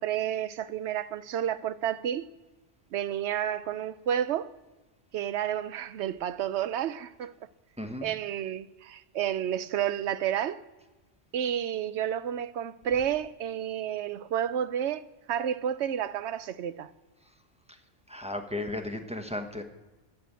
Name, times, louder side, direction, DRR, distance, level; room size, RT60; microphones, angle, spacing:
voice 1, 0.0-2.3 2.9-4.5 5.1-7.3 8.0-10.6 11.3-15.0 15.3-16.9, right 10 dB, 75° right, 0.9 m, -30 dB
voice 2, 7.8-8.1 18.1-19.6, left 1 dB, 5° right, 1.0 m, -35 dB
15.0 x 8.5 x 7.6 m
omnidirectional pair, 1.2 m